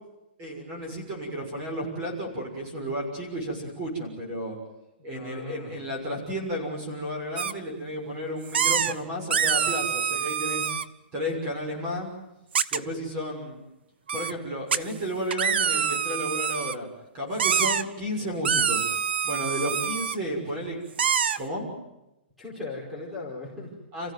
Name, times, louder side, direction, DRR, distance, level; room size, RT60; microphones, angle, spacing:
voice 1, 0.4-4.6 5.0-10.8 11.1-12.1 12.7-13.6 14.1-16.9 17.1-18.9 19.2-20.8 21.4-21.7 23.9-24.1, equal, 25° right, 2 dB, 6.5 m, -32 dB
voice 2, 5.0-5.7 22.4-23.8, left 2 dB, ahead, -9 dB, 5.0 m, -38 dB
sound 1, 7.4-7.5 8.5-8.9 9.3-10.8 12.5-12.8 14.1-14.3 14.7-14.8 15.3-16.7 17.4-17.8 18.4-20.1 21.0-21.4, right 7 dB, 70° right, 1.0 m, -25 dB
29.0 x 15.5 x 9.4 m, 0.94 s
hypercardioid pair, 170°, 6 cm